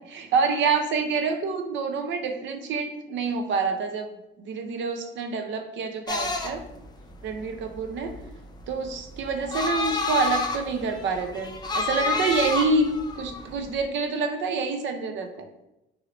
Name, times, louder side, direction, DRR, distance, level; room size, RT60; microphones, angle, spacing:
voice 1, 0.0-4.1 4.4-6.6 7.2-8.1 8.7-12.9 13.2-15.3, right 4 dB, 70° right, 5 dB, 0.6 m, -27 dB
sound 1, 6.1-13.8, left 3 dB, 20° left, 0.4 m, -29 dB
2.9 x 2.7 x 2.9 m, 0.89 s
cardioid pair, 90°, 20 cm